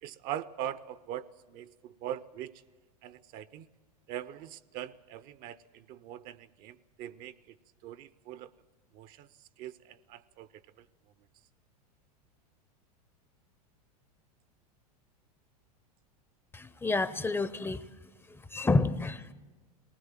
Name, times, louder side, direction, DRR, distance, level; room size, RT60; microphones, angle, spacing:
voice 1, 0.0-2.5 3.0-3.7 4.1-7.6 7.8-8.5 8.9-10.9, right 11 dB, 45° right, 16 dB, 0.7 m, -42 dB
voice 2, 16.5-17.9 18.3-19.3, left 3 dB, 10° left, 15 dB, 0.7 m, -29 dB
19.5 x 19.0 x 7.5 m, 1.2 s
hypercardioid pair, 95°, 21 cm